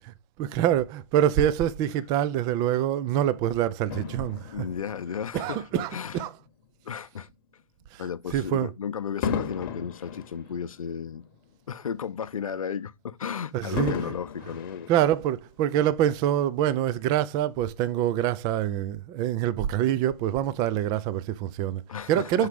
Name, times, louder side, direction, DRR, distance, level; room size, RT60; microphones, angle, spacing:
voice 1, 0.4-4.7 5.3-6.3 7.9-8.0 8.3-8.7 13.5-14.1 14.9-21.8 22.1-22.5, right 11 dB, 20° right, 0.5 m, -25 dB
Fireworks, 3.9-6.5 7.1-7.3 9.2-11.7 12.1-12.2 13.8-15.6 16.4-16.5, left 6 dB, 40° left, 1.1 m, -35 dB
voice 2, 4.5-5.6 5.9-6.2 6.8-7.3 8.0-11.2 11.7-14.9 21.9-22.5, left 7 dB, 70° left, 0.7 m, -34 dB
5.8 x 4.7 x 4.9 m
figure-of-eight pair, 130°, 18 cm